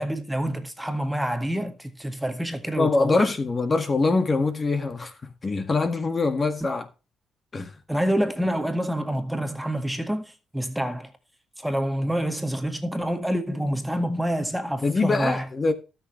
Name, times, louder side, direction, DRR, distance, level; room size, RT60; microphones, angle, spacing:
voice 1, 0.0-3.3 7.9-10.2 10.5-11.1 11.6-15.4, equal, 5° right, 1.8 m, -27 dB
voice 2, 2.8-6.9 7.5-7.7 14.8-15.7, left 3 dB, 30° left, 1.8 m, -24 dB
18.5 x 6.7 x 3.2 m
cardioid pair, 90°, 0 cm